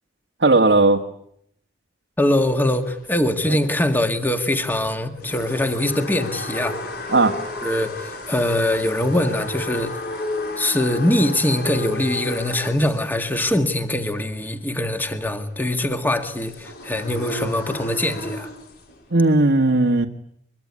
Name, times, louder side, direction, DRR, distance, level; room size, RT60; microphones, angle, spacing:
voice 1, 0.4-1.0 3.4-3.6 7.1-7.4 19.1-20.1, right 2 dB, 85° right, 2 dB, 1.6 m, -16 dB
voice 2, 2.2-6.8 7.6-9.9 10.6-18.5, left 1 dB, 10° left, 6 dB, 1.9 m, -22 dB
sound 1, 2.3-19.1, left 2 dB, 65° left, 5.8 m, -34 dB
23.5 x 23.5 x 9.6 m, 0.72 s
head